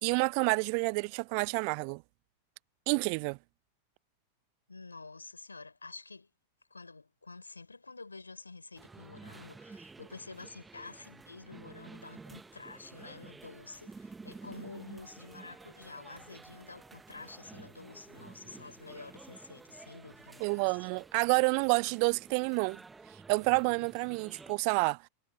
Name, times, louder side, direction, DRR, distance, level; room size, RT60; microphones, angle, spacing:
voice 1, 0.0-2.0 2.9-3.4 20.4-22.8 23.3-25.0, right 40 dB or more, 45° right, 0.6 m, -29 dB
voice 2, 4.7-6.3 6.7-20.9, left 3 dB, 80° left, 4.9 m, -49 dB
sound 1, 8.8-24.6, right 4 dB, 10° right, 1.5 m, -52 dB
figure-of-eight pair, 90°, 0 cm